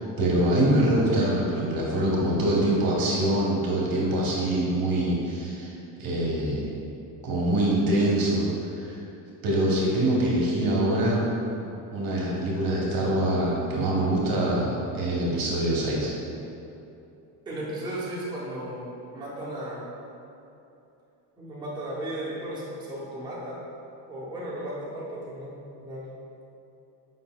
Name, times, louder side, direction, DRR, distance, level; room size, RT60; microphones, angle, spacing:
voice 1, 0.0-5.7 6.0-6.6 7.2-8.5 8.8-9.0 9.4-11.2 11.9-16.1, right 1 dB, 45° right, -4 dB, 1.0 m, -24 dB
voice 2, 17.5-18.9 19.1-19.9 21.4-23.6 24.1-26.0, right 1 dB, 10° right, -8 dB, 0.8 m, -35 dB
5.3 x 3.8 x 2.3 m, 2.8 s
cardioid pair, 115°, 50 cm